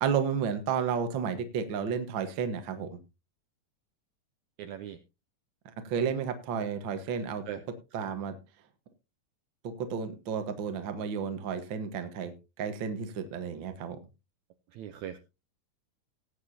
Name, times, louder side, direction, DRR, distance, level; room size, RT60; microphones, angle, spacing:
voice 1, 0.0-3.0 5.8-7.4 7.9-8.4 9.6-14.0, right 7 dB, 50° right, 8 dB, 1.5 m, -32 dB
voice 2, 4.6-5.0 7.5-7.6 14.7-15.2, right 10 dB, 75° right, 9 dB, 1.8 m, -39 dB
19.0 x 8.4 x 2.8 m, 0.27 s
omnidirectional pair, 3.9 m